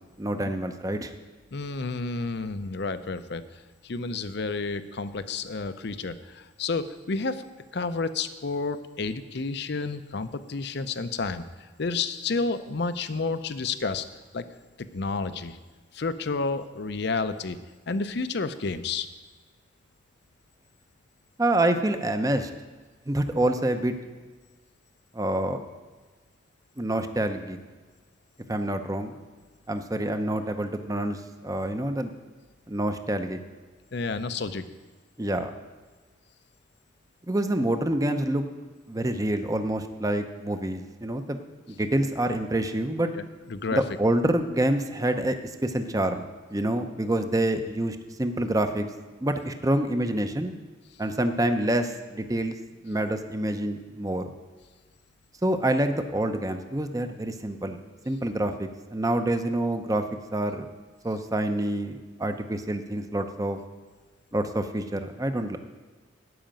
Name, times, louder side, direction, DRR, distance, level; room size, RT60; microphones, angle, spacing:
voice 1, 0.2-1.1 21.4-22.5 23.1-23.9 25.1-25.6 26.8-27.6 28.5-29.1 29.7-32.1 32.7-33.4 35.2-35.5 37.3-38.4 38.9-41.4 41.7-43.1 43.7-46.3 46.5-48.9 49.2-50.5 51.0-52.6 52.8-54.2 55.4-57.8 58.1-60.0 60.3-60.7 61.0-63.6 64.3-65.6, right 1 dB, 20° right, 7 dB, 0.7 m, -27 dB
voice 2, 1.5-3.4 3.8-7.4 7.7-11.4 11.8-14.0 14.3-14.4 14.9-15.6 15.9-17.6 17.9-19.1 33.9-34.6 43.1-43.8, left 4 dB, 60° left, 11 dB, 0.6 m, -30 dB
13.0 x 5.1 x 8.9 m, 1.3 s
head